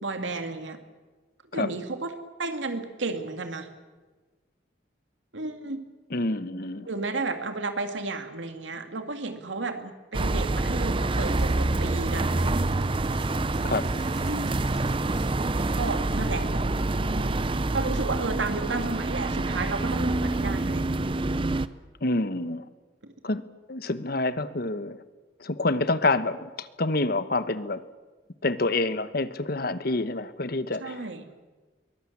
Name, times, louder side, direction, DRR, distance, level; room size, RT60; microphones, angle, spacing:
voice 1, 0.0-0.8 1.5-2.1 2.4-3.7 5.3-5.8 6.9-12.6 14.3-14.6 15.8-16.5 17.7-20.8 23.0-23.1 30.8-31.3, right 3 dB, 80° right, 7 dB, 2.2 m, -32 dB
voice 2, 6.1-6.9 13.6-13.9 22.0-22.7 23.2-23.4 23.7-25.0 25.4-27.8 28.4-31.0, left 2 dB, 55° left, 13 dB, 1.0 m, -27 dB
sound 1, 10.1-21.7, right 2 dB, 30° right, 0.6 m, -27 dB
sound 2, 11.1-15.3 15.6-16.9, equal, 65° right, 4.6 m, -39 dB
23.0 x 18.0 x 8.5 m, 1.3 s
head